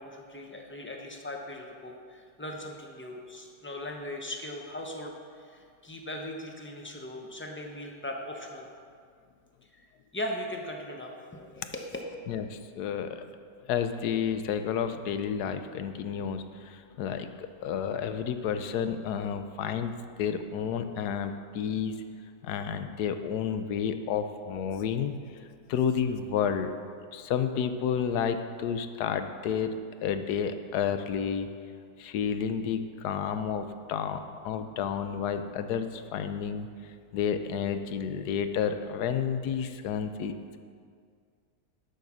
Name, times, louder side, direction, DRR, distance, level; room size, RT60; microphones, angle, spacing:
voice 1, 0.0-8.7 9.7-9.8 10.1-11.8, left 1 dB, 15° left, 1 dB, 0.4 m, -39 dB
voice 2, 12.3-13.2 13.7-22.0 22.4-26.7 27.1-31.5 32.0-40.6, left 7 dB, 90° left, 9 dB, 1.2 m, -31 dB
10.5 x 5.3 x 6.1 m, 2.1 s
omnidirectional pair, 1.6 m